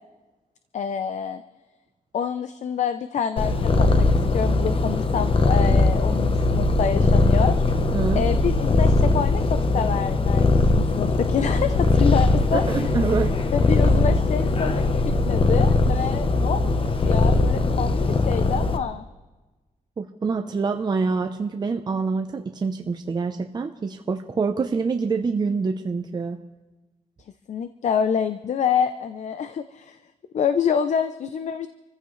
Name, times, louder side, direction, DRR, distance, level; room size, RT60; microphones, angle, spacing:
voice 1, 0.7-1.4 2.1-7.6 8.2-12.6 13.5-19.0 27.5-30.0 30.3-31.7, left 7 dB, 55° left, 10 dB, 0.6 m, -27 dB
Purr, 3.4-18.8, left 2 dB, 40° left, 1.0 m, -20 dB
voice 2, 12.5-13.3 20.0-26.4, right 4 dB, 30° right, 5 dB, 0.7 m, -26 dB
27.0 x 15.0 x 3.2 m, 1.2 s
wide cardioid pair, 160°, 14 cm